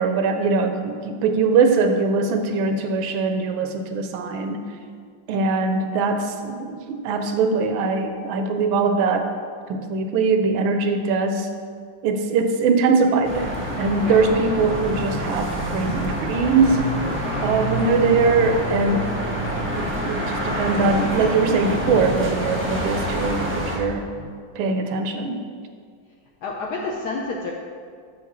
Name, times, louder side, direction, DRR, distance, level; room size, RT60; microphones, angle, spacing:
voice 1, 0.0-4.6 5.3-9.3 9.7-11.5 12.0-16.9 17.4-19.1 19.7-24.1 24.6-25.4, right 4 dB, 80° right, 6 dB, 1.3 m, -21 dB
sound 1, 13.2-23.8, equal, 10° right, 0.5 m, -27 dB
voice 2, 14.0-14.3 17.2-17.5 24.2-24.3 26.4-27.5, left 3 dB, 75° left, -1 dB, 0.9 m, -30 dB
7.1 x 6.2 x 3.0 m, 2.1 s
omnidirectional pair, 2.2 m